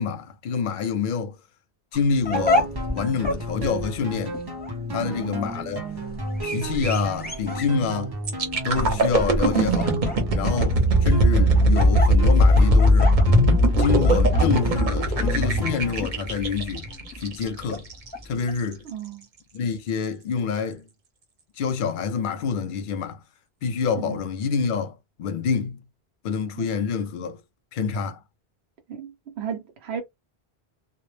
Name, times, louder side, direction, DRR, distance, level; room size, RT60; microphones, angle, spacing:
voice 1, 0.0-1.4 1.9-4.4 4.9-5.8 6.4-8.1 8.6-10.0 10.3-13.1 13.8-16.9 17.2-17.8 18.3-18.8 19.5-20.8 21.6-23.2 23.6-24.9 25.2-25.8 26.2-27.4 27.7-28.2, left 5 dB, 60° left, 0.6 m, -27 dB
sound 1, 1.9-18.6, left 2 dB, 10° left, 0.6 m, -31 dB
sound 2, 2.3-16.0, right 2 dB, 35° right, 0.4 m, -32 dB
voice 2, 5.0-5.5 18.8-19.3 24.0-24.2 26.6-26.7 28.9-29.1 29.4-30.0, right 8 dB, 85° right, 0.8 m, -34 dB
sound 3, 8.3-18.1 18.6-18.7, equal, 55° right, 0.8 m, -20 dB
2.1 x 2.1 x 3.1 m
omnidirectional pair, 1.0 m